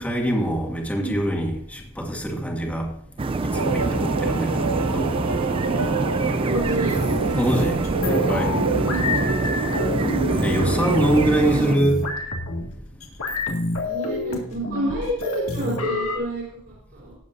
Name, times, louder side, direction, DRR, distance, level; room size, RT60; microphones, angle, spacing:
voice 1, 0.0-2.9 3.4-5.1 7.4-7.8 8.1-8.6 10.4-12.1, right 1 dB, 5° left, -1 dB, 2.1 m, -24 dB
sound 1, 3.2-11.7, right 3 dB, 25° right, 0.4 m, -25 dB
sound 2, 3.5-11.3, right 3 dB, 90° right, 0.9 m, -27 dB
voice 2, 6.4-6.9 8.8-9.1 11.6-11.8 13.8-17.2, right 1 dB, 50° right, -7 dB, 4.6 m, -29 dB
sound 3, 6.5-16.2, left 2 dB, 70° left, 2.1 m, -29 dB
19.0 x 8.1 x 2.6 m, 0.67 s
head